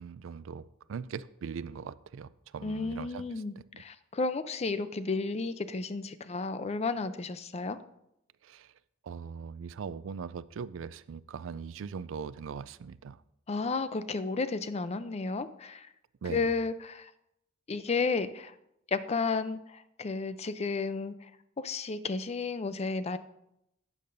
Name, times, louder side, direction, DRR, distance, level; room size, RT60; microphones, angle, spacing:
voice 1, 0.0-3.2 3.6-3.8 8.4-8.7 9.0-13.2 16.2-16.5, right 6 dB, 70° right, 17 dB, 0.4 m, -40 dB
voice 2, 2.6-7.8 13.5-15.9 16.3-17.1 17.7-18.5 18.9-21.3 21.6-23.2, left 4 dB, 35° left, 13 dB, 0.5 m, -32 dB
12.0 x 8.6 x 2.6 m, 0.81 s
head